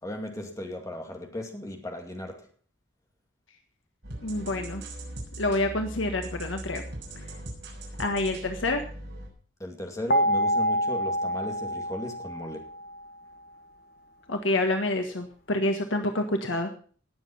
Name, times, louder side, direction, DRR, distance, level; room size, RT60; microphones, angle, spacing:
voice 1, 0.0-2.5 9.6-12.7, left 1 dB, 15° left, 2.3 m, -36 dB
sound 1, 4.0-9.3, right 1 dB, 60° right, 6.3 m, -40 dB
voice 2, 4.2-4.8 5.4-6.8 8.0-8.8 14.3-16.7, left 2 dB, 85° left, 1.6 m, -27 dB
sound 2, 10.1-13.1, equal, 50° left, 1.3 m, -27 dB
19.5 x 7.5 x 5.7 m
head